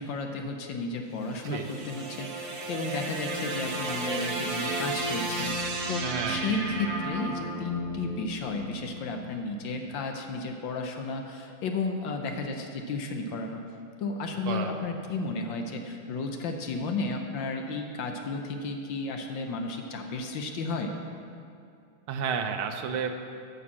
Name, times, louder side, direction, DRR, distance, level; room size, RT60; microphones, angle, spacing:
voice 1, 0.0-13.6 14.0-20.9, left 3 dB, 70° left, 4 dB, 1.4 m, -33 dB
sound 1, 1.1-9.4, right 2 dB, 50° right, 1.4 m, -33 dB
voice 2, 6.0-6.4 14.5-14.8 22.1-23.1, right 6 dB, 80° right, 6 dB, 1.6 m, -31 dB
8.3 x 7.0 x 7.2 m, 2.5 s
omnidirectional pair, 2.4 m